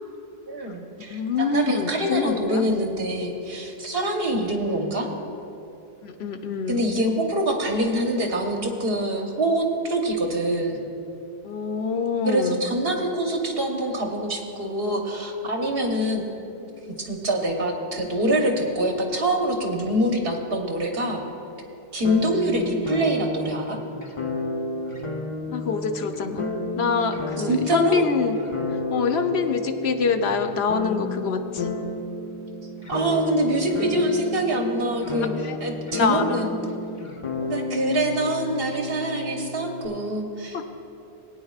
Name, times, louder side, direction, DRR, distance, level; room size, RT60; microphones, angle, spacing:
voice 1, 0.5-5.1 6.7-10.8 12.2-16.2 17.0-21.2 21.9-23.8 27.4-28.0 32.9-36.5 37.4-40.6, right 1 dB, 70° right, 2 dB, 1.3 m, -25 dB
voice 2, 1.1-2.7 6.0-6.8 11.4-12.6 25.5-26.5 26.8-28.4 28.9-31.7 35.4-35.6 35.9-36.5 40.5-40.6, left 5 dB, 85° left, 7 dB, 1.0 m, -25 dB
sound 1, 22.0-39.9, left 2 dB, 35° left, 0.9 m, -32 dB
20.5 x 9.2 x 2.4 m, 2.9 s
omnidirectional pair, 1.0 m